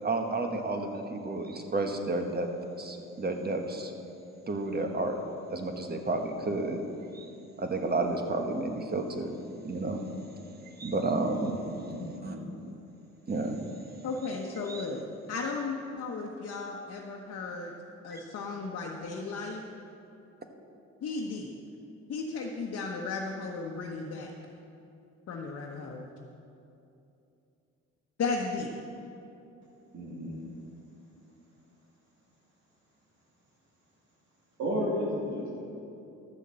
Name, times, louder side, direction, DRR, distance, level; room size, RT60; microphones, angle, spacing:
voice 1, 0.0-2.5 2.8-3.9 4.5-5.2 5.5-6.9 7.1-7.3 7.6-9.3 9.6-10.0 10.8-11.6 12.2-12.3 13.3-13.6 14.7-14.8 18.1-18.2, right 2 dB, 30° right, 4 dB, 1.3 m, -31 dB
voice 2, 11.7-12.5 29.9-30.4 34.6-35.6, equal, 65° right, -5 dB, 2.6 m, -33 dB
voice 3, 14.0-15.0 15.3-17.7 18.0-19.6 21.0-21.5 22.1-24.3 25.3-26.1 28.2-28.7, left 4 dB, 55° left, 0 dB, 1.1 m, -35 dB
12.0 x 6.4 x 7.6 m, 2.8 s
cardioid pair, 90°, 30 cm